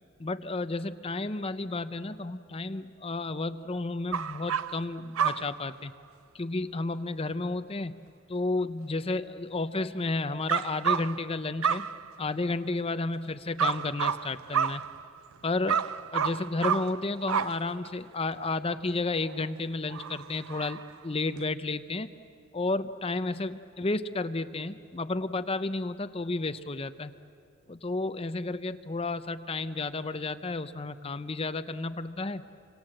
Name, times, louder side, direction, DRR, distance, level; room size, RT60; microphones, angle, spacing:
voice 1, 0.2-5.9 6.3-8.0 8.3-11.9 12.2-14.8 15.4-22.1 22.5-27.1 27.7-32.5, left 3 dB, 25° left, 11 dB, 0.6 m, -32 dB
sound 1, 4.1-4.9 5.1-5.7 10.5-11.4 11.6-12.3 13.6-15.3 15.7-17.9 18.3-18.4 19.2-19.4 19.9-20.9 21.4-21.5, right 7 dB, 85° right, 0.6 m, -30 dB
27.0 x 25.5 x 7.8 m, 2.5 s
head